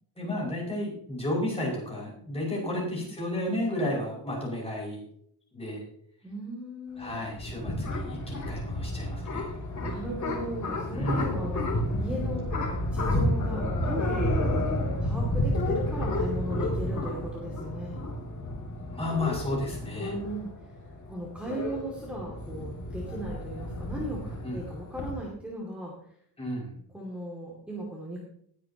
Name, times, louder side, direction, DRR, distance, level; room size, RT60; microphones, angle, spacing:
voice 1, 0.2-5.0 5.5-5.8 7.0-9.5 10.9-11.3 18.9-20.1 24.4-24.6 26.4-26.7, left 1 dB, 15° left, -4 dB, 6.1 m, -32 dB
voice 2, 6.2-7.3 9.8-12.4 12.9-14.7 15.0-18.0 20.0-20.5 21.1-25.9 26.9-28.2, right 1 dB, 5° right, -3 dB, 2.5 m, -37 dB
sound 1, 7.0-25.1, left 1 dB, 45° left, 2.9 m, -31 dB
20.0 x 8.8 x 3.0 m, 0.66 s
wide cardioid pair, 175°, 39 cm